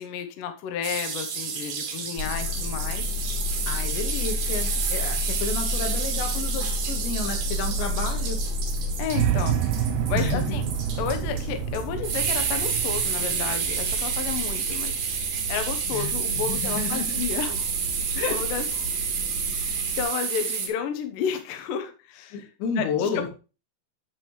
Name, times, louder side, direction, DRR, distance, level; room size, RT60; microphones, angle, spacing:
voice 1, 0.0-3.1 9.0-10.7 11.0-19.0 19.4-22.5 22.8-23.3, left 8 dB, 70° left, 7 dB, 2.2 m, -32 dB
sound 1, 0.8-20.7, right 6 dB, 60° right, 2.7 m, -30 dB
sound 2, 2.2-20.0, left 1 dB, 50° left, 2.2 m, -32 dB
voice 2, 3.7-8.4 10.2-10.6 15.9-17.2 18.1-18.4 22.3-23.3, left 5 dB, 90° left, 4 dB, 3.9 m, -31 dB
sound 3, 9.1-15.2, right 10 dB, 90° right, 2.9 m, -29 dB
8.7 x 7.6 x 3.1 m, 0.32 s
omnidirectional pair, 4.9 m